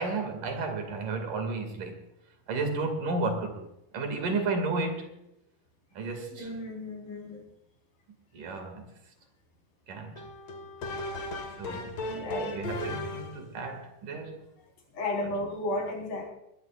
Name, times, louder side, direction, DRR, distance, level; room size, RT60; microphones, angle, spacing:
voice 1, 0.0-2.1 2.5-3.7 3.9-5.2 5.9-6.5 8.3-9.0 9.9-10.3 11.6-12.0 12.5-14.5, right 3 dB, 65° right, 3.8 m, -33 dB
voice 2, 6.3-7.5 12.0-12.6 14.9-16.3, left 1 dB, 70° left, 5.9 m, -34 dB
sound 1, 10.2-13.5, left 2 dB, 50° left, 2.7 m, -36 dB
21.0 x 16.5 x 2.5 m
omnidirectional pair, 4.1 m